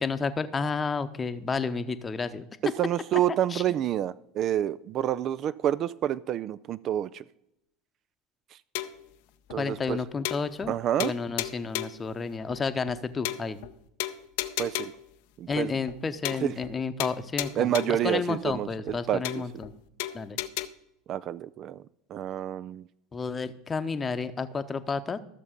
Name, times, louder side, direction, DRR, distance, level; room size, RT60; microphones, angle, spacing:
voice 1, 0.0-2.4 3.5-3.6 9.6-13.6 15.5-19.7 20.1-20.4 23.1-25.2, left 4 dB, 25° left, 11 dB, 0.8 m, -31 dB
voice 2, 2.8-7.2 9.5-10.0 10.7-11.1 14.6-14.9 15.4-15.7 16.4-16.5 17.6-19.4 21.1-21.8 22.1-22.9, right 11 dB, 45° right, 17 dB, 0.3 m, -28 dB
sound 1, 8.7-9.1 9.5-9.6 9.9-10.0 10.2-10.7 11.0-12.0 12.5-12.6 12.9-13.0 13.2-13.7 14.0-15.1 15.5-15.6 15.9-16.0 16.2-16.7 17.0-18.1 18.5-18.6 18.9-19.0 19.2-19.7 20.0-20.7, left 15 dB, 60° left, 0.6 m, -34 dB
13.5 x 7.0 x 5.1 m, 0.81 s
figure-of-eight pair, 75°, 0 cm